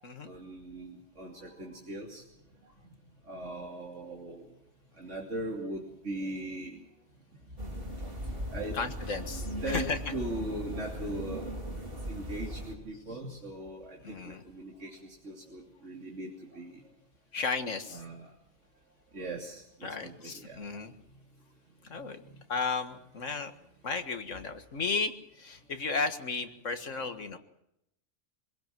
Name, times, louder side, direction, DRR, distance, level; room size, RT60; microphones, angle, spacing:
voice 1, 0.2-2.2 3.2-4.5 5.0-6.8 8.5-8.8 9.6-16.8 17.9-18.3 19.1-20.6 22.3-22.4, right 1 dB, 70° right, -2 dB, 3.4 m, -40 dB
sound 1, 7.6-12.7, equal, 45° right, 3.9 m, -38 dB
voice 2, 8.7-10.0 14.0-14.4 17.3-18.0 19.8-20.9 21.8-22.2 22.5-23.5 23.8-27.4, left 4 dB, 85° left, 7 dB, 2.1 m, -34 dB
26.0 x 17.0 x 7.6 m, 0.80 s
omnidirectional pair, 1.3 m